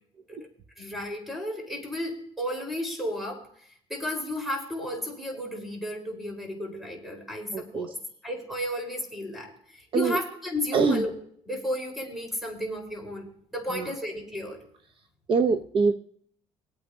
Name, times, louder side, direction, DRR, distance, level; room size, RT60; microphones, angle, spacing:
voice 1, 0.8-3.5 3.9-7.9 8.2-11.1 11.5-14.6, left 1 dB, ahead, 1 dB, 4.5 m, -33 dB
voice 2, 7.5-7.9 9.9-10.2 10.7-11.0 13.7-13.9 15.3-15.9, right 5 dB, 45° right, 7 dB, 0.8 m, -24 dB
23.5 x 8.8 x 2.8 m, 0.62 s
cardioid pair, 125°, 12 cm